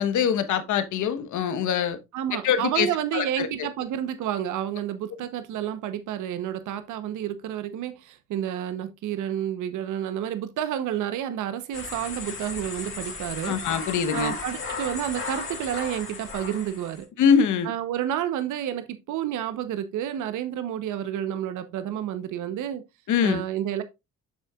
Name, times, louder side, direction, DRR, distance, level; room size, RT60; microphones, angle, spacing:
voice 1, 0.0-2.0 2.4-2.9 3.1-3.5 13.4-14.3 17.2-17.7 23.1-23.4, left 7 dB, 75° left, 1.2 m, -23 dB
voice 2, 2.1-13.6 14.1-17.1 17.6-22.8 23.2-23.8, right 10 dB, 85° right, 0.9 m, -30 dB
sound 1, 11.7-17.0, left 4 dB, 45° left, 3.1 m, -35 dB
8.1 x 6.6 x 2.4 m
cardioid pair, 90°, 30 cm